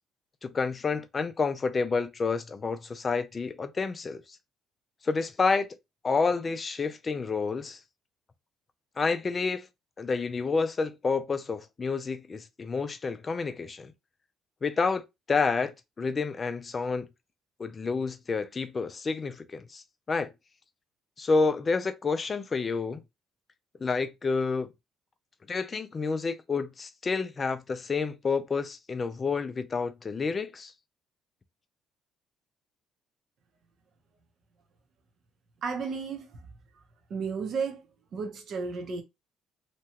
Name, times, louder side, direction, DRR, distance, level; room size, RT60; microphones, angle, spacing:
voice 1, 0.4-4.2 5.0-5.7 6.0-7.8 9.0-9.6 10.0-13.9 14.6-15.0 15.3-17.1 17.6-20.3 21.2-23.0 23.8-24.7 25.5-30.7, left 4 dB, 30° left, 0.4 m, -29 dB
voice 2, 35.6-36.5 37.1-37.9 38.1-39.0, right 5 dB, 55° right, 0.8 m, -33 dB
2.9 x 2.3 x 2.8 m
cardioid pair, 110°, 0 cm